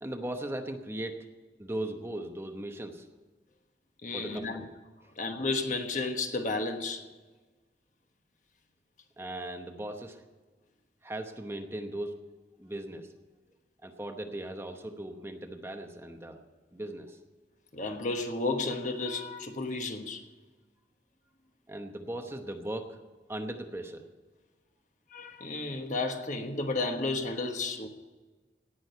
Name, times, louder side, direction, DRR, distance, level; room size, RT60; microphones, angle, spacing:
voice 1, 0.0-1.3 1.6-3.1 4.1-4.7 5.0-5.1 9.2-10.2 11.0-12.2 12.6-13.1 13.8-16.4 16.7-17.2 21.7-23.0 23.3-24.0, right 1 dB, 15° right, 0.9 m, -38 dB
voice 2, 4.0-4.6 5.2-7.0 17.7-20.2 25.1-27.9, left 3 dB, 45° left, 1.3 m, -32 dB
17.5 x 6.3 x 9.2 m
head